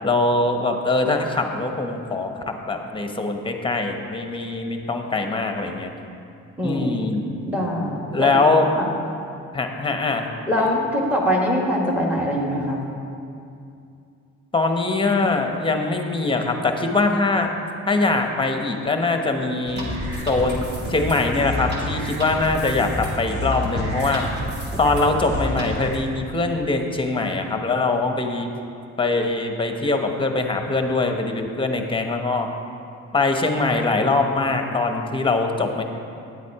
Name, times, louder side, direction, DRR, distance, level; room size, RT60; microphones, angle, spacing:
voice 1, 0.0-5.9 6.6-7.2 8.1-8.7 9.5-10.3 10.5-10.6 14.5-17.5 17.9-19.9 20.3-24.2 24.8-28.5 29.0-32.5 33.1-35.8, left 3 dB, 15° left, 4 dB, 1.0 m, -22 dB
voice 2, 6.6-8.4 8.8-8.9 10.5-12.8, equal, 5° right, -1 dB, 1.6 m, -23 dB
sound 1, 19.7-26.0, equal, 35° right, 2.3 m, -29 dB
9.8 x 8.2 x 4.7 m, 2.5 s
cardioid pair, 90°, 30 cm